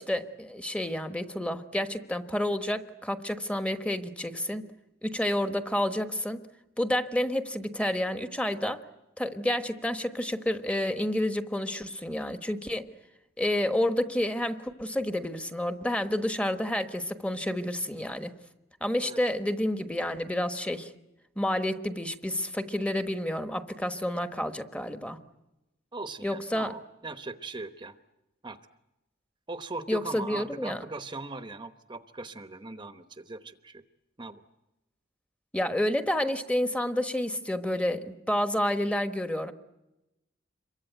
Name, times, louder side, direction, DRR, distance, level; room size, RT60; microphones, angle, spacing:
voice 1, 0.0-4.7 5.0-6.4 6.8-8.8 9.2-12.9 13.4-18.3 18.8-20.9 21.4-25.2 26.2-26.7 29.9-30.8 35.5-39.5, left 1 dB, 5° left, 8 dB, 1.2 m, -29 dB
voice 2, 25.9-28.0 28.4-28.6 29.5-33.8 34.2-34.4, right 3 dB, 25° right, 9 dB, 0.9 m, -39 dB
27.0 x 23.5 x 9.1 m, 0.96 s
head